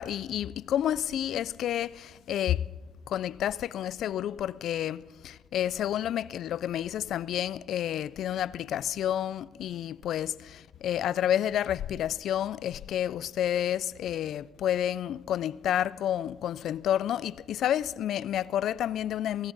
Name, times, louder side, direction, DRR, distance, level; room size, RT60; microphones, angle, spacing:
voice 1, 0.0-2.6 3.1-19.5, left 11 dB, 75° left, 0.3 m, -30 dB
17.0 x 16.5 x 4.0 m
cardioid pair, 90°, 0 cm